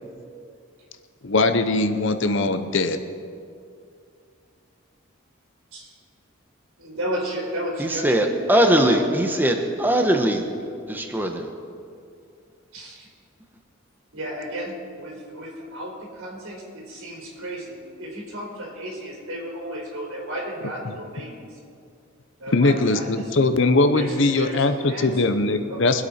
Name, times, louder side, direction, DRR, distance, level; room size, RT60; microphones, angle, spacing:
voice 1, 1.2-3.0 22.5-26.0, left 2 dB, 60° left, 9 dB, 0.8 m, -21 dB
voice 2, 6.8-9.1 12.7-13.1 14.1-21.6 22.4-23.3 23.9-25.1 25.7-25.9, right 1 dB, 90° right, -3 dB, 3.6 m, -33 dB
voice 3, 7.8-10.5 10.9-11.5, right 1 dB, 10° right, 4 dB, 1.0 m, -20 dB
23.5 x 8.3 x 4.4 m, 2.3 s
head